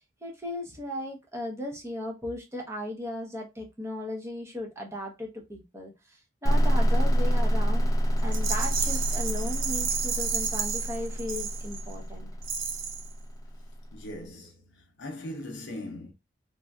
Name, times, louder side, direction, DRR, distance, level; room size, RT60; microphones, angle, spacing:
voice 1, 0.2-7.9 8.2-12.3, left 1 dB, 15° right, 0.7 m, -36 dB
sound 1, 6.5-14.0, equal, 20° left, 0.3 m, -27 dB
Rattle, 8.3-11.9 12.4-13.1, right 6 dB, 80° right, 0.6 m, -32 dB
voice 2, 13.9-16.1, left 1 dB, 65° left, 0.6 m, -40 dB
3.2 x 2.5 x 2.3 m
head